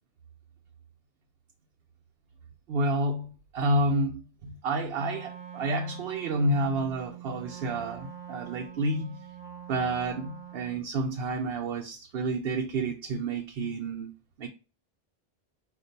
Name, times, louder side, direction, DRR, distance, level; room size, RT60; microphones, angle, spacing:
voice 1, 2.7-9.2 9.7-14.1 14.4-14.5, right 2 dB, 70° right, 0.8 m, -29 dB
Wind instrument woodwind instrument, 5.0-10.9, right 9 dB, 25° right, 0.9 m, -44 dB
5.3 x 2.5 x 3.8 m
omnidirectional pair, 1.1 m